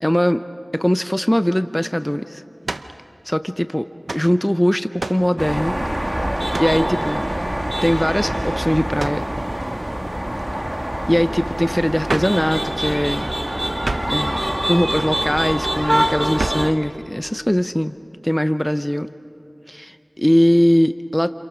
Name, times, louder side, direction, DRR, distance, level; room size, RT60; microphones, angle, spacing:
voice 1, 0.0-0.4 0.7-2.4 3.2-5.7 6.6-7.3 7.8-9.3 11.1-13.3 14.1-17.9 18.2-19.1 19.7-21.3, equal, 10° left, 10 dB, 0.6 m, -20 dB
sound 1, 2.6-3.0 4.1-4.3 5.0-5.3 6.5-6.8 9.0-9.3 12.1-12.4 13.8-14.2 16.4-16.7, right 2 dB, 85° right, 0.8 m, -28 dB
sound 2, 5.4-16.7, right 1 dB, 20° right, 1.5 m, -24 dB
30.0 x 28.0 x 6.2 m, 2.7 s
wide cardioid pair, 50°, 0 cm